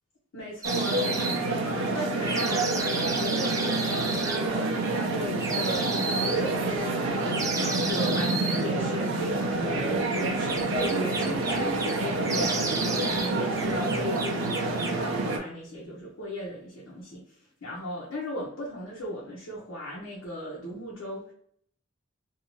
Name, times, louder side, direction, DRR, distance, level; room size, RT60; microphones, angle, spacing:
voice 1, 0.3-4.2 4.6-21.3, equal, 85° left, -5 dB, 0.8 m, -36 dB
sound 1, 0.6-1.4 2.3-4.4 5.4-6.4 7.3-8.6 10.1-12.0 12.2-13.3 13.6-15.0, right 3 dB, 15° right, 0.4 m, -32 dB
sound 2, 0.6-15.4, right 2 dB, 80° right, 0.5 m, -28 dB
2.6 x 2.4 x 3.0 m, 0.65 s
head